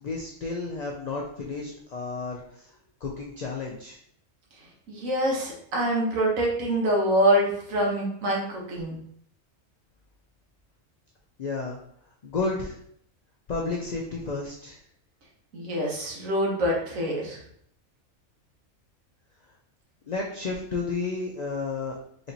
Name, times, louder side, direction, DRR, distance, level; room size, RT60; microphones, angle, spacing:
voice 1, 0.0-2.4 3.0-4.0 11.4-11.8 12.2-12.8 13.5-14.8 20.1-21.9, left 3 dB, 80° left, -1 dB, 0.3 m, -31 dB
voice 2, 4.9-9.0 15.5-17.4, right 1 dB, 85° right, -2 dB, 1.4 m, -25 dB
4.2 x 2.9 x 2.7 m, 0.66 s
omnidirectional pair, 1.4 m